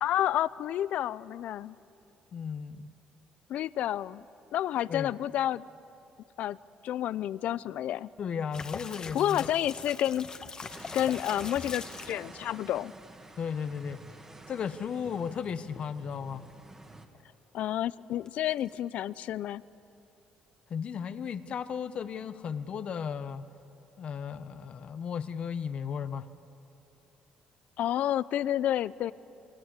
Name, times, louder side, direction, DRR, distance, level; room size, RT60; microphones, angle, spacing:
voice 1, 0.0-1.8 3.5-4.3 4.5-5.6 6.4-6.6 6.8-8.1 9.1-10.3 10.9-12.9 17.5-19.6 27.8-29.1, left 12 dB, 65° left, 18 dB, 0.5 m, -30 dB
voice 2, 2.3-2.9 4.9-5.1 8.2-9.5 13.4-14.0 14.5-16.5 20.7-23.4 24.0-26.3, left 7 dB, 45° left, 12 dB, 1.1 m, -35 dB
sound 1, 8.5-12.2 18.3-18.8, left 4 dB, 30° left, 1.3 m, -42 dB
sound 2, 10.7-17.1, right 2 dB, 20° right, 2.2 m, -49 dB
28.0 x 24.0 x 8.3 m, 2.9 s
cardioid pair, 125°, 3 cm